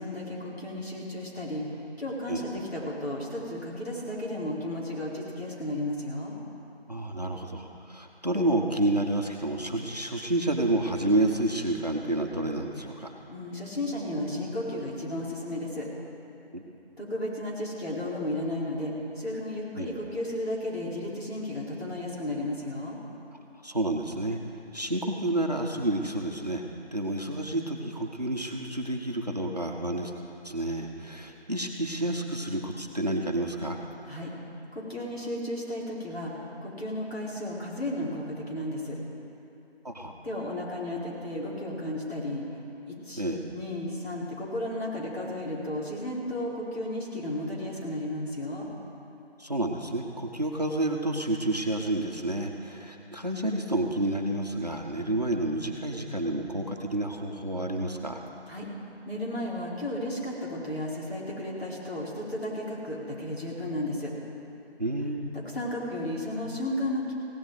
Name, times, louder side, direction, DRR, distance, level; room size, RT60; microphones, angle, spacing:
voice 1, 0.0-1.6 2.0-6.3 13.3-15.9 17.0-23.0 34.1-34.3 34.7-36.3 36.6-39.0 40.2-42.4 43.1-43.2 43.5-48.7 58.5-58.7 59.0-64.1 65.3-67.1, left 1 dB, 65° left, -5 dB, 4.5 m, -33 dB
voice 2, 6.9-13.1 16.5-16.6 19.7-19.9 23.6-24.4 24.7-26.6 26.9-30.1 30.4-33.8 39.8-40.1 43.2-43.4 49.4-58.2 64.8-65.3, right 1 dB, 40° right, 1 dB, 1.0 m, -29 dB
17.0 x 16.5 x 4.1 m, 2.9 s
figure-of-eight pair, 175°, 33 cm